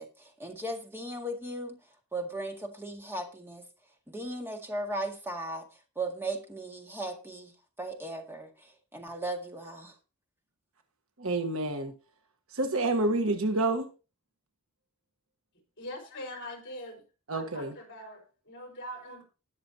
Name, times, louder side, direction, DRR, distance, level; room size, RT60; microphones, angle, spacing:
voice 1, 0.0-1.8 2.1-3.7 4.1-9.9, right 1 dB, 10° right, 1.9 m, -37 dB
voice 2, 11.2-11.9 12.5-13.8 17.3-17.7, right 2 dB, 65° right, 1.3 m, -28 dB
voice 3, 15.8-17.0 17.3-19.2, left 1 dB, 50° left, 4.4 m, -42 dB
20.0 x 6.8 x 2.9 m
head